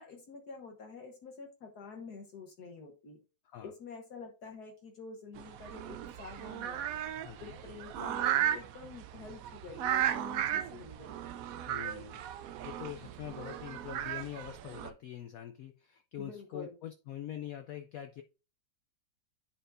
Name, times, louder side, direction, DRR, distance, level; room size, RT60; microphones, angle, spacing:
voice 1, 0.0-3.2 3.6-6.9 7.4-11.4 16.2-16.8, left 4 dB, 60° left, 1.4 m, -48 dB
sound 1, 5.4-14.9, right 11 dB, 75° right, 0.7 m, -35 dB
voice 2, 7.2-7.6 11.7-18.2, left 10 dB, 80° left, 0.7 m, -44 dB
10.0 x 4.4 x 2.5 m
omnidirectional pair, 2.0 m